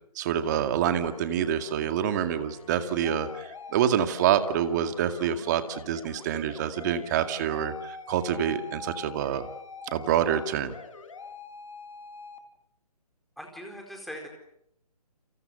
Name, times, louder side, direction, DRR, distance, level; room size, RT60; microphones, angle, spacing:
voice 1, 0.2-9.5 9.9-10.7, right 9 dB, 30° right, 8 dB, 2.2 m, -27 dB
sound 1, 1.0-12.4, left 5 dB, 55° left, 4.3 m, -45 dB
voice 2, 13.4-14.3, equal, ahead, 1 dB, 4.4 m, -40 dB
30.0 x 27.0 x 6.9 m, 0.77 s
figure-of-eight pair, 155°, 20 cm